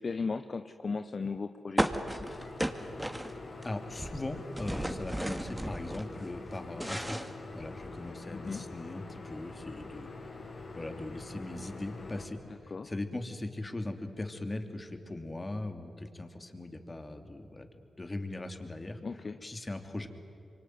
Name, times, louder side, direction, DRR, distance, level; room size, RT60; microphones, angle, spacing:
voice 1, 0.0-2.4 8.3-8.7 12.7-12.9 19.0-19.4, left 4 dB, 50° left, 10 dB, 0.9 m, -37 dB
sound 1, 1.8-3.7 3.9-6.1 6.5-8.0, right 1 dB, 10° right, 2.4 m, -34 dB
sound 2, 2.2-12.2, left 3 dB, 70° left, 6.2 m, -45 dB
voice 2, 3.6-10.1 10.8-17.7 18.0-19.0 19.4-20.1, left 2 dB, 30° left, 6 dB, 3.0 m, -39 dB
26.0 x 24.0 x 9.6 m, 2.7 s
supercardioid pair, 50°, 0 cm